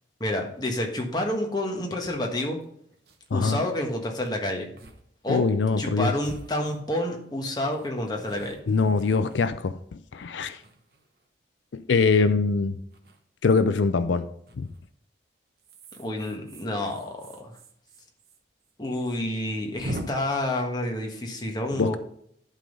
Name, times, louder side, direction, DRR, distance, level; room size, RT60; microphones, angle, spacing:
voice 1, 0.2-2.6 3.3-4.7 5.2-5.5 5.8-8.6 16.0-17.5 18.8-22.0, left 1 dB, 20° left, 2 dB, 1.4 m, -29 dB
sound 1, 2.0-2.1 2.6-2.7 2.9-3.3 4.2-4.3 4.8-5.0 5.3-5.4 6.2-7.2 7.7-9.9 10.5-11.3 12.9-13.2 14.5-14.8 15.6-18.4 18.6-18.7 19.0-19.1 19.8-20.0, right 1 dB, 55° right, 1.1 m, -42 dB
voice 2, 5.3-6.1 8.7-10.6 11.7-12.8 13.4-14.3 14.6-14.7 21.8-22.0, left 4 dB, 85° left, 12 dB, 0.5 m, -23 dB
11.5 x 3.8 x 5.2 m, 0.68 s
head